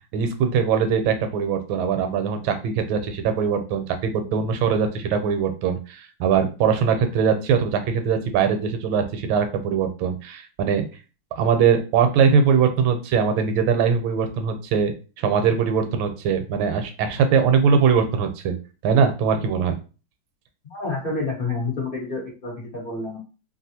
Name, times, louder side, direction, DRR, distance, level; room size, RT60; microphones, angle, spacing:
voice 1, 0.1-10.9 11.4-18.6 18.8-19.8, right 6 dB, 80° right, 7 dB, 1.3 m, -21 dB
voice 2, 20.7-23.2, left 3 dB, 85° left, -3 dB, 0.4 m, -28 dB
3.2 x 2.4 x 2.7 m, 0.33 s
omnidirectional pair, 2.2 m